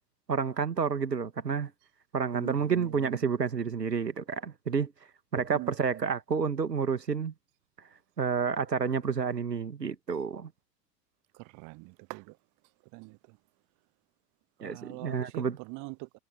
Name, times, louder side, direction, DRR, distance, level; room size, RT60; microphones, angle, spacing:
voice 1, 0.3-1.7 2.1-4.9 5.3-7.3 8.2-10.5 14.6-15.6, right 6 dB, 80° right, 2.0 m, -30 dB
voice 2, 11.5-12.2 12.9-13.1 14.6-15.4 15.7-16.2, right 30 dB, 40° right, 1.0 m, -42 dB
figure-of-eight pair, 80°, 48 cm